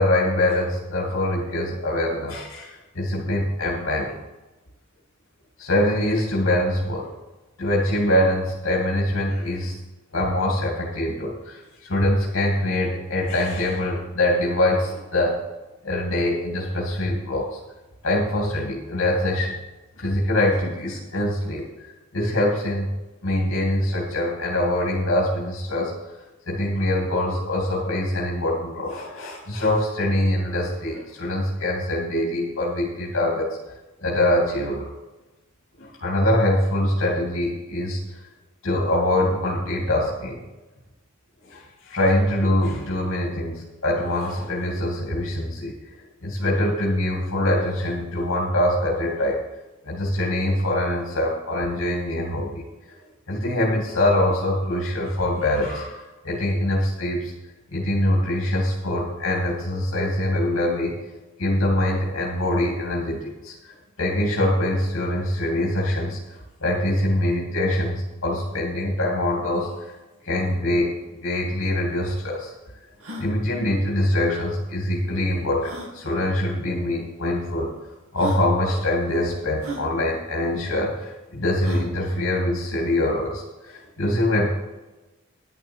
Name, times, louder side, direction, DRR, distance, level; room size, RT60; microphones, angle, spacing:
voice 1, 0.0-4.1 5.6-7.1 7.6-9.8 10.1-15.4 15.8-17.6 18.0-19.6 20.0-22.9 23.2-25.9 26.5-33.6 34.0-34.9 35.8-38.2 38.6-40.4 41.5-45.7 46.2-49.4 49.8-52.6 53.3-57.3 57.7-61.0 61.4-70.0 70.2-72.5 73.2-77.7 78.1-84.5, left 1 dB, 70° left, -2 dB, 2.5 m, -24 dB
Gasp (female voice), 71.4-71.5 71.7-71.8 72.3-72.4 72.9-73.3 74.6-74.7 75.6-75.9 76.9-77.0 77.7-77.8 78.2-78.5 79.6-79.9 81.6-81.9, right 2 dB, 85° right, 2.5 m, -34 dB
11.0 x 10.5 x 4.5 m, 1.1 s
head